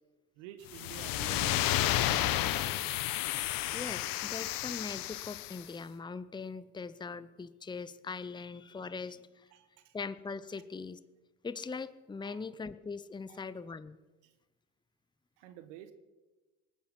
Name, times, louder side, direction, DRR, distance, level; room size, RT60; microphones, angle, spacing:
voice 1, 0.4-1.7 9.5-10.0 12.2-12.4 13.3-13.5 14.2-14.3 15.4-15.9, right 10 dB, 85° right, 9 dB, 1.3 m, -49 dB
sound 1, 0.7-5.6, left 14 dB, 70° left, 1.0 m, -32 dB
voice 2, 3.7-9.5 9.9-11.0 11.4-14.0, left 4 dB, 10° left, 14 dB, 0.7 m, -41 dB
20.0 x 9.2 x 7.6 m, 1.2 s
supercardioid pair, 80°, 36 cm